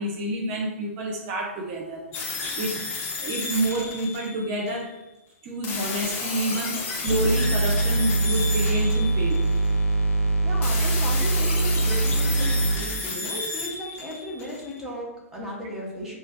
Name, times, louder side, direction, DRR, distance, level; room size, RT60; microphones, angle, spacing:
voice 1, 0.0-2.1 2.6-2.9 3.2-4.9 5.4-9.4, right 1 dB, 30° right, 0 dB, 0.5 m, -28 dB
sound 1, 2.1-4.8 5.6-9.7 10.6-14.8, left 4 dB, 25° left, 0.5 m, -32 dB
sound 2, 7.1-12.8, right 2 dB, 75° left, 0.6 m, -23 dB
voice 2, 10.4-16.2, equal, 5° right, -4 dB, 0.8 m, -35 dB
3.0 x 2.4 x 4.1 m, 0.97 s
figure-of-eight pair, 115°, 8 cm